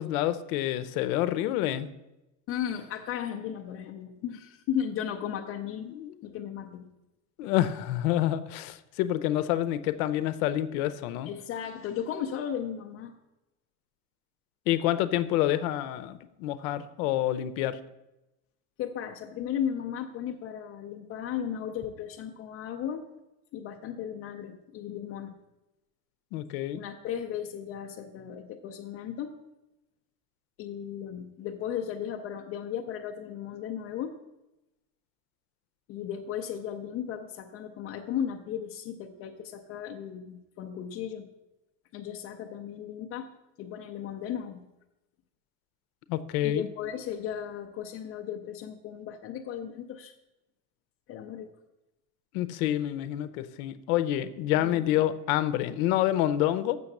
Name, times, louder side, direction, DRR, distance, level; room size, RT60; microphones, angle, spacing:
voice 1, 0.0-1.9 5.8-6.1 7.4-11.3 14.7-17.8 26.3-26.8 46.1-46.7 52.3-56.8, left 13 dB, 90° left, 14 dB, 0.7 m, -28 dB
voice 2, 2.5-5.9 6.2-6.9 11.3-13.1 18.8-23.0 23.5-25.3 26.7-29.3 30.6-34.2 35.9-41.3 41.9-43.3 43.6-44.7 46.4-50.1 51.1-51.5 54.5-54.9, left 9 dB, 35° left, 1 dB, 0.4 m, -35 dB
7.1 x 6.8 x 6.6 m, 0.96 s
cardioid pair, 170°, 41 cm